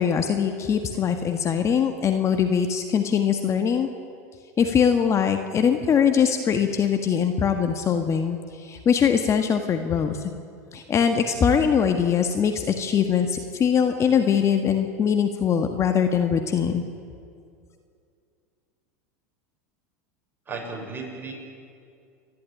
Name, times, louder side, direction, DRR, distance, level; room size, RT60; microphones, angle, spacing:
voice 1, 0.0-3.9 4.6-10.2 10.7-16.8, left 7 dB, 35° left, 6 dB, 1.7 m, -22 dB
voice 2, 20.5-21.3, right 4 dB, 20° right, 0 dB, 6.8 m, -34 dB
30.0 x 12.5 x 10.0 m, 2.4 s
hypercardioid pair, 90°, 9 cm